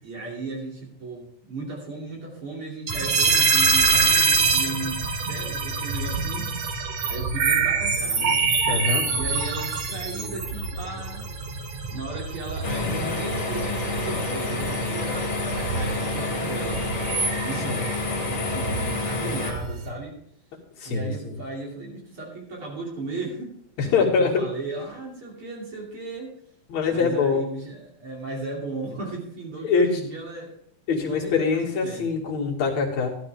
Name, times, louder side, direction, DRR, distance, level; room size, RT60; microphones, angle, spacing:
voice 1, 0.0-6.5 7.1-8.4 9.1-11.3 11.9-16.8 17.4-18.0 18.2-20.2 20.8-23.5 23.8-26.3 26.9-30.5 31.0-32.1, right 3 dB, 45° right, -2 dB, 3.5 m, -36 dB
sound 1, 2.9-19.9, right 4 dB, 65° right, 2.5 m, -26 dB
voice 2, 8.7-9.0 17.7-17.8 20.8-21.4 23.9-24.3 26.7-27.5 29.6-29.9 30.9-33.1, left 5 dB, 70° left, -2 dB, 3.3 m, -23 dB
sound 2, 12.6-19.5, left 3 dB, 50° left, 3.0 m, -28 dB
14.5 x 12.0 x 3.5 m, 0.67 s
omnidirectional pair, 3.4 m